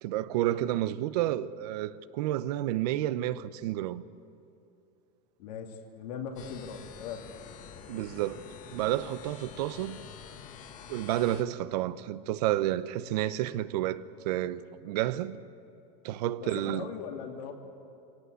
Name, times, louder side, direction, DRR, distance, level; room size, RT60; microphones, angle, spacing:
voice 1, 0.0-4.0 7.9-10.0 10.9-15.4 16.0-16.9, right 13 dB, 75° right, 0.9 m, -30 dB
voice 2, 5.4-7.2 15.6-15.7 16.4-17.5, left 7 dB, 90° left, 3.0 m, -39 dB
sound 1, 6.4-11.4, left 7 dB, 40° left, 1.4 m, -47 dB
24.0 x 18.0 x 8.3 m
supercardioid pair, 140°, 21 cm